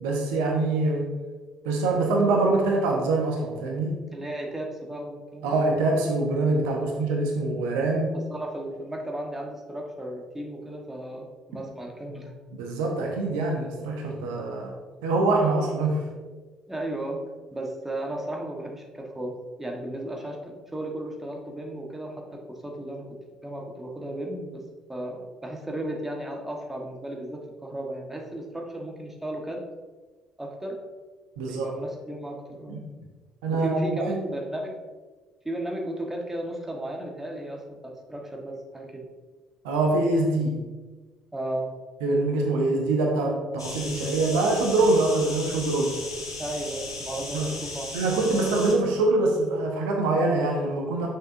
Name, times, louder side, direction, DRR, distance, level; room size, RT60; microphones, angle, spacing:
voice 1, 0.0-1.1 1.6-4.0 5.4-8.2 12.5-14.7 15.0-16.0 31.4-31.7 32.7-32.8 33.4-33.7 34.1-34.2 39.6-40.6 42.0-46.0 47.3-47.5 47.9-51.1, right 2 dB, 70° right, 1 dB, 0.8 m, -24 dB
voice 2, 4.1-5.6 6.8-6.9 8.3-12.4 16.7-17.2 17.5-24.6 24.9-29.6 30.4-30.8 31.4-32.8 33.5-34.7 35.4-39.0 41.3-41.7 46.4-48.1, right 1 dB, 10° right, 0 dB, 1.3 m, -35 dB
sound 1, 43.6-48.8, left 2 dB, 85° left, 0.7 m, -36 dB
6.6 x 6.5 x 2.6 m, 1.3 s
figure-of-eight pair, 45°, 2 cm